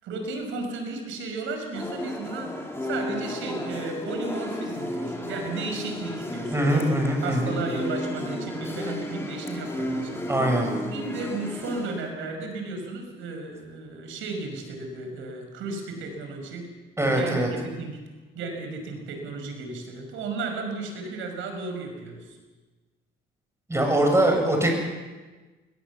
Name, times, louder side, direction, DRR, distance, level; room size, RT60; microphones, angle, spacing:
voice 1, 0.0-6.9 7.2-10.2 10.9-16.7 17.1-18.0 18.3-22.3, right 3 dB, 85° right, 4 dB, 5.8 m, -34 dB
sound 1, 1.7-12.1, left 1 dB, 10° left, 4.4 m, -33 dB
voice 2, 6.5-7.6 10.3-10.7 17.0-17.5 23.7-24.7, right 1 dB, 15° right, 2 dB, 7.8 m, -22 dB
21.0 x 20.5 x 7.3 m, 1.3 s
cardioid pair, 90°, 20 cm